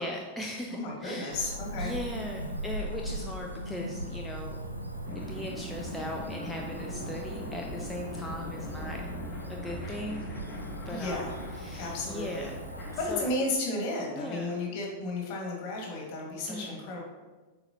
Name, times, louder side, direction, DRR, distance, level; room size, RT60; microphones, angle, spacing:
voice 1, 0.0-1.4 1.8-4.6 5.2-9.0 9.5-10.2 10.9-11.3 11.5-12.6 13.1-13.3 14.1-14.5 16.5-16.8, left 1 dB, 5° left, -1 dB, 0.6 m, -39 dB
voice 2, 0.7-1.9 10.9-11.4 11.7-12.5 13.0-17.0, left 2 dB, 45° left, -1 dB, 1.8 m, -33 dB
Cricket / Motor vehicle (road), 1.3-13.0, equal, 90° right, 0.6 m, -39 dB
sound 1, 5.0-13.3, left 1 dB, 20° left, 1.6 m, -41 dB
7.7 x 4.5 x 2.9 m, 1.3 s
figure-of-eight pair, 90°, 0 cm